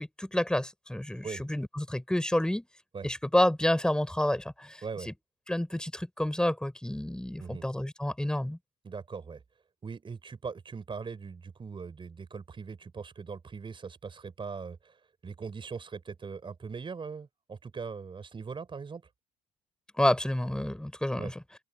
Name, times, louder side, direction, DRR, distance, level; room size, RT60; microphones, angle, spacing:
voice 1, 0.0-2.7 3.0-5.1 5.5-8.6 20.0-21.4, left 1 dB, 5° left, 4.3 m, -29 dB
voice 2, 8.8-9.4 9.8-15.0 15.2-19.0 21.2-21.3, right 5 dB, 30° right, 4.8 m, -40 dB
open air
hypercardioid pair, 70°, 17 cm